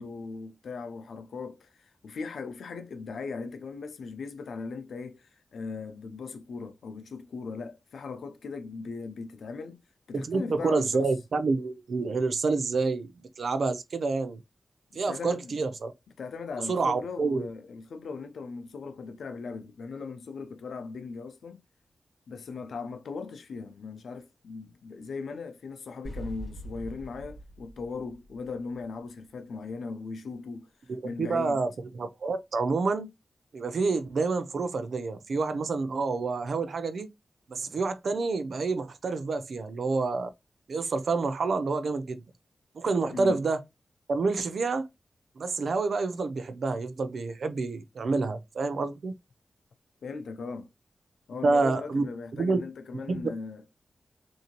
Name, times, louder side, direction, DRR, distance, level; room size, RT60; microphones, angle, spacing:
voice 1, 0.0-9.8 10.1-11.0 14.9-15.5 16.2-21.6 22.3-31.6 43.1-43.4 50.0-50.7 51.3-53.6, left 4 dB, 90° left, 0.5 m, -39 dB
voice 2, 10.1-13.1 13.4-14.4 14.9-15.9 16.7-17.5 30.9-31.7 31.9-33.1 33.5-37.1 37.5-40.3 40.7-42.2 42.7-43.6 44.1-44.9 45.4-49.1 51.4-52.0 52.3-52.6 53.1-53.2, right 3 dB, 75° right, 0.5 m, -28 dB
sound 1, 26.0-29.0, right 1 dB, 30° left, 1.9 m, -42 dB
3.6 x 2.7 x 2.9 m
cardioid pair, 65°, 0 cm